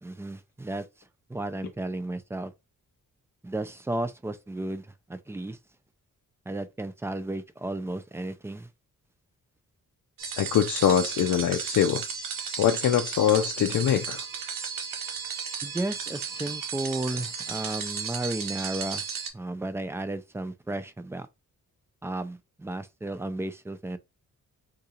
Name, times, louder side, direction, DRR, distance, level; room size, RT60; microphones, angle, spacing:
voice 1, 0.0-2.5 3.4-5.6 6.5-8.7 15.6-19.0 19.3-21.3 22.0-24.0, right 2 dB, 10° right, 0.3 m, -34 dB
sound 1, 10.2-19.3, right 6 dB, 75° right, 0.8 m, -34 dB
voice 2, 10.4-12.0 12.6-14.2, left 9 dB, 65° left, 0.5 m, -23 dB
3.9 x 2.3 x 2.8 m
wide cardioid pair, 105°, 33 cm